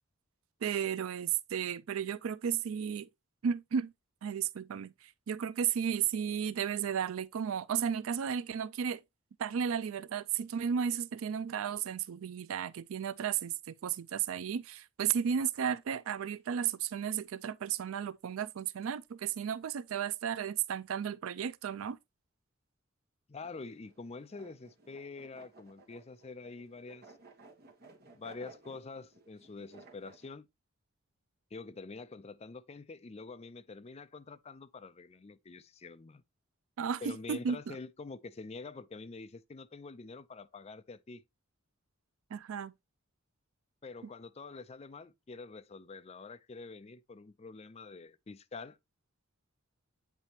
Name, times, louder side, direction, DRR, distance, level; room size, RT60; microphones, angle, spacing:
voice 1, 0.6-3.1 3.4-3.9 4.2-9.0 9.4-22.0 36.8-37.8 42.3-42.7, right 8 dB, 80° right, 0.4 m, -34 dB
voice 2, 23.3-27.1 28.1-30.5 31.5-36.2 37.0-41.2 43.8-48.8, left 3 dB, 30° left, 0.4 m, -46 dB
sound 1, 23.4-30.3, right 3 dB, 50° right, 1.3 m, -57 dB
8.2 x 4.1 x 2.8 m
head